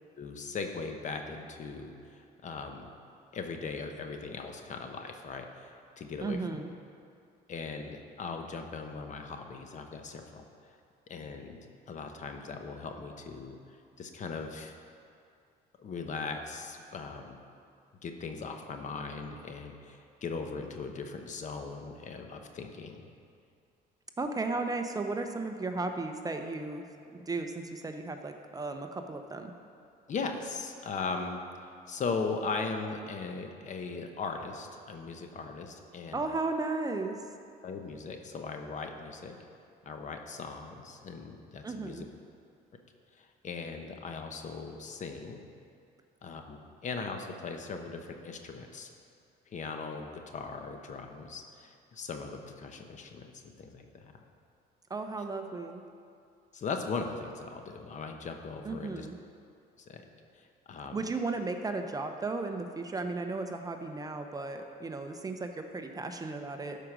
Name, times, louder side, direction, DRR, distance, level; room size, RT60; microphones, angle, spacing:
voice 1, 0.2-2.9 3.3-6.6 7.5-10.8 11.1-11.6 11.9-14.7 15.8-17.4 18.0-23.1 30.1-31.4 31.9-36.2 37.6-39.3 39.8-42.0 43.1-45.4 46.2-48.9 49.5-54.1 56.5-59.1 59.8-60.0 60.3-61.1, left 4 dB, 45° left, 5 dB, 1.0 m, -39 dB
voice 2, 6.2-6.7 24.2-26.8 27.1-29.5 36.1-37.2 41.6-42.1 54.9-55.8 58.6-59.2 60.9-66.8, right 3 dB, 20° right, 6 dB, 0.6 m, -35 dB
12.5 x 5.1 x 6.1 m, 2.4 s
cardioid pair, 110°, 17 cm